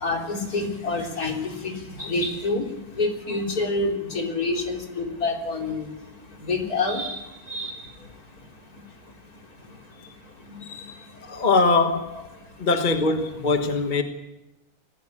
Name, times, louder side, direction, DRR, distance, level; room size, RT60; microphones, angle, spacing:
voice 1, 0.0-1.7 2.0-2.6 3.0-5.8 6.5-7.1 7.5-7.7 10.5-10.6, left 3 dB, 55° left, 4.1 m, -27 dB
voice 2, 11.1-12.2 12.6-14.0, left 3 dB, 30° left, 1.2 m, -22 dB
21.5 x 15.5 x 8.6 m
omnidirectional pair, 1.9 m